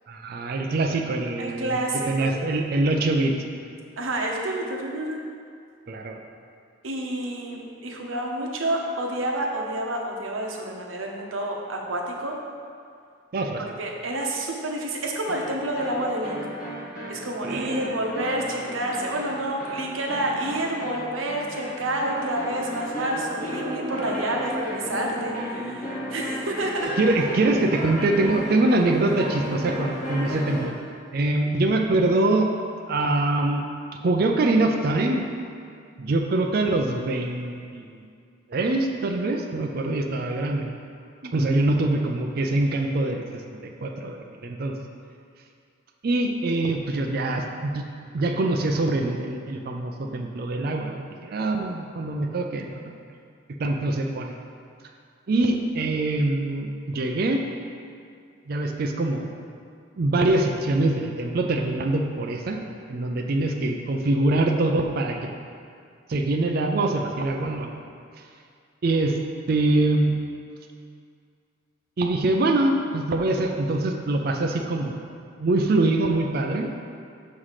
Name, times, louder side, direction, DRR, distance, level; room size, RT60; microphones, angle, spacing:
voice 1, 0.1-1.8 2.1-3.3 5.9-6.2 13.3-13.7 17.4-17.9 27.0-30.7 31.1-32.5 32.9-33.6 34.0-35.2 36.0-38.0 38.5-40.7 41.3-44.7 46.0-47.8 48.1-53.0 53.6-54.3 55.3-57.4 58.5-59.2 60.0-62.6 62.9-65.3 66.1-67.7 68.8-69.2 69.5-70.1 72.0-74.9 75.4-76.7, right 2 dB, 50° right, 2 dB, 0.4 m, -24 dB
voice 2, 1.4-2.3 4.0-5.2 6.8-12.4 13.6-16.4 17.1-27.0 41.2-41.5, right 1 dB, 90° right, 0 dB, 0.8 m, -29 dB
sound 1, 15.3-30.8, equal, 45° left, 1.4 m, -33 dB
6.1 x 3.2 x 5.6 m, 2.3 s
head